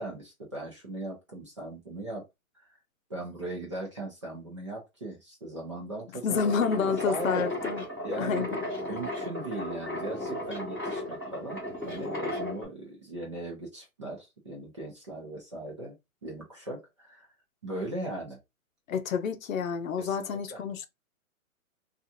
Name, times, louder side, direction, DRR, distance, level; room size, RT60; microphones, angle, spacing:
voice 1, 0.0-2.3 2.5-2.7 3.1-6.5 6.8-7.5 8.0-8.5 8.9-15.9 16.2-17.3 17.6-18.4 20.0-20.6, right 2 dB, 20° right, 0.5 m, -38 dB
voice 2, 6.2-7.8 8.2-8.5 18.9-20.9, left 6 dB, 70° left, 0.7 m, -29 dB
sound 1, 6.3-12.6, left 1 dB, 5° right, 0.9 m, -35 dB
2.5 x 2.4 x 2.7 m
hypercardioid pair, 165°, 43 cm